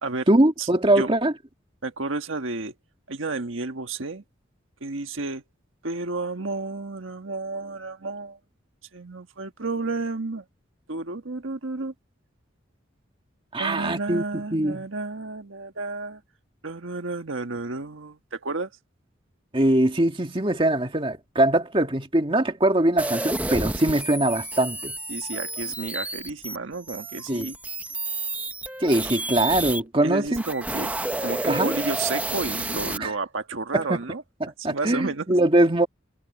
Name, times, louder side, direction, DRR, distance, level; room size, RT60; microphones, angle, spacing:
voice 1, 0.3-1.3 13.5-14.9 19.5-24.9 27.3-27.5 28.8-30.4 31.4-31.8 33.0-33.1 33.7-34.0 34.4-35.9, right 1 dB, 25° right, 1.9 m, -22 dB
voice 2, 1.8-2.7 3.1-4.2 4.8-5.4 5.8-8.4 8.9-10.4 10.9-11.9 13.6-16.2 16.6-18.7 25.1-27.6 30.0-30.9 31.2-34.2 34.6-35.3, right 3 dB, 80° right, 1.5 m, -31 dB
sound 1, 23.0-29.8 30.3-33.0, right 2 dB, 10° right, 0.8 m, -30 dB
head